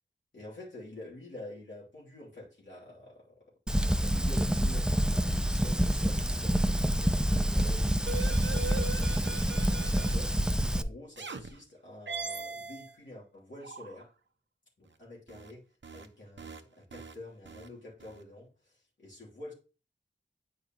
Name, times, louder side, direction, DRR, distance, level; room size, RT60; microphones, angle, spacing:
voice 1, 0.3-14.1 14.8-15.6 15.9-19.5, left 1 dB, 70° left, 2.9 m, -48 dB
Fire, 3.7-10.8, equal, 5° right, 0.4 m, -27 dB
sound 1, 8.1-10.4 11.2-11.5 12.1-13.0 13.6-14.0 15.3-15.5 15.8-16.1 16.4-16.6 16.9-17.1 17.5-17.7 18.0-18.2, right 4 dB, 65° right, 0.9 m, -40 dB
9.0 x 5.3 x 2.9 m
wide cardioid pair, 75°, 20 cm